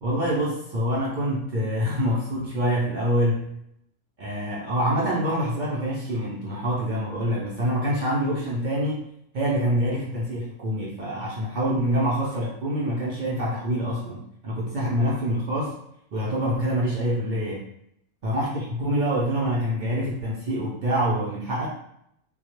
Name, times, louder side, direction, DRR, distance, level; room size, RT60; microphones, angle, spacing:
voice 1, 0.0-3.5 4.2-9.0 9.3-15.7 16.1-17.6 18.2-21.7, equal, 75° right, -5 dB, 0.4 m, -26 dB
2.2 x 2.0 x 2.9 m, 0.75 s
omnidirectional pair, 1.4 m